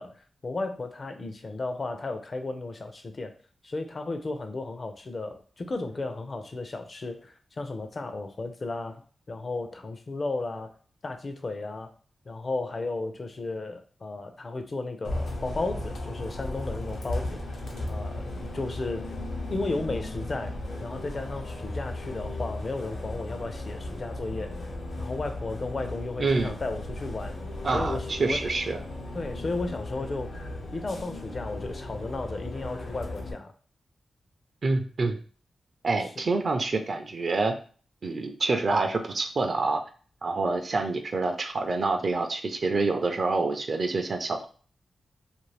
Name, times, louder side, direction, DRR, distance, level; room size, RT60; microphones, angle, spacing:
voice 1, 0.0-3.3 3.6-9.0 9.3-10.7 11.0-11.9 12.3-17.4 17.9-19.0 19.5-24.6 25.0-27.4 27.7-28.4 29.1-30.4 30.7-33.5, left 3 dB, 45° left, 7 dB, 0.5 m, -34 dB
Bus, 15.0-33.3, left 1 dB, 80° left, 0.7 m, -36 dB
voice 2, 26.2-26.5 27.6-28.8 34.6-35.2 35.8-37.5 38.0-39.8 40.2-44.5, right 3 dB, 55° right, 6 dB, 0.4 m, -27 dB
2.5 x 2.5 x 3.2 m, 0.41 s
cardioid pair, 80°, 0 cm